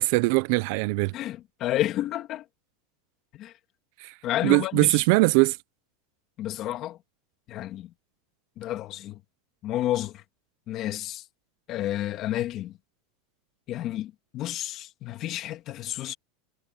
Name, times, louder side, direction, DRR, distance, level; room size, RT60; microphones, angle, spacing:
voice 1, 0.0-1.1 4.0-4.1 4.4-5.6, right 25 dB, 55° right, 0.6 m, -21 dB
voice 2, 1.1-2.4 3.4-3.5 4.2-5.0 6.4-7.0 7.5-7.9 8.6-9.2 9.6-10.1 10.7-11.2 11.7-12.7 13.7-16.1, left 13 dB, 35° left, 2.4 m, -30 dB
supercardioid pair, 150°, 0 cm